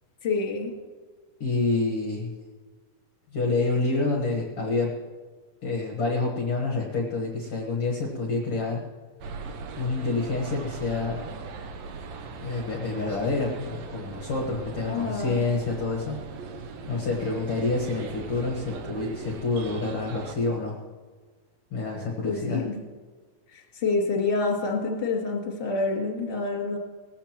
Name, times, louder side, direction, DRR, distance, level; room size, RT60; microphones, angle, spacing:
voice 1, 0.2-0.7 14.9-15.5 22.2-22.8 23.5-26.8, left 3 dB, 20° left, -1 dB, 1.8 m, -27 dB
voice 2, 1.4-2.3 3.3-4.9 5.6-8.8 9.8-11.2 12.4-16.2 16.9-20.8 21.7-22.6, left 3 dB, 60° left, 0 dB, 1.5 m, -28 dB
sound 1, 9.2-20.4, right 4 dB, 75° right, 1.6 m, -39 dB
19.5 x 15.0 x 3.0 m, 1.5 s
omnidirectional pair, 4.5 m